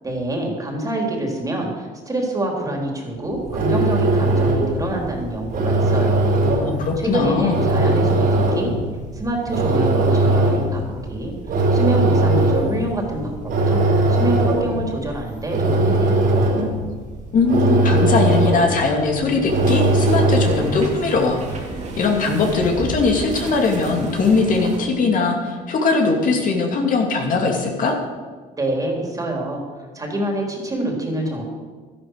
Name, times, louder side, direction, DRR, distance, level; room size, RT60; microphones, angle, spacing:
voice 1, 0.0-6.4 7.0-8.7 9.1-13.4 13.7-16.5 28.6-29.6 29.9-31.4, right 1 dB, 20° right, 1 dB, 3.5 m, -26 dB
sound 1, 3.3-20.9, right 2 dB, 60° right, 4.5 m, -20 dB
voice 2, 6.4-7.6 17.3-21.4 22.0-28.0, left 4 dB, 50° left, 1 dB, 2.6 m, -20 dB
sound 2, 19.5-24.8, right 3 dB, 45° right, 2.7 m, -32 dB
12.5 x 11.0 x 6.4 m, 1.4 s
cardioid pair, 110°, 17 cm